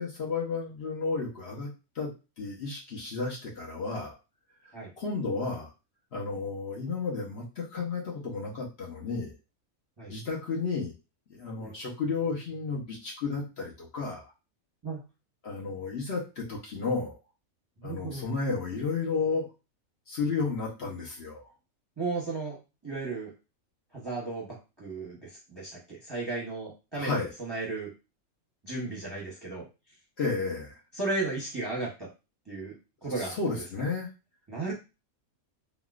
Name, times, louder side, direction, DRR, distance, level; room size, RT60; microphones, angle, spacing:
voice 1, 0.0-1.7 1.9-2.1 2.4-4.1 5.0-5.7 6.1-9.3 10.1-10.9 11.3-14.3 15.4-16.2 16.5-17.2 17.8-19.5 20.1-21.4 27.0-27.3 30.2-30.8 33.2-34.1, left 4 dB, 50° left, -3 dB, 1.0 m, -32 dB
voice 2, 17.8-18.2 22.0-22.6 22.8-23.3 23.9-27.9 28.6-29.6 31.0-32.1 32.5-32.8 33.0-33.3 34.5-34.7, right 3 dB, 20° right, -4 dB, 0.7 m, -34 dB
3.6 x 2.3 x 2.4 m, 0.29 s
omnidirectional pair, 1.5 m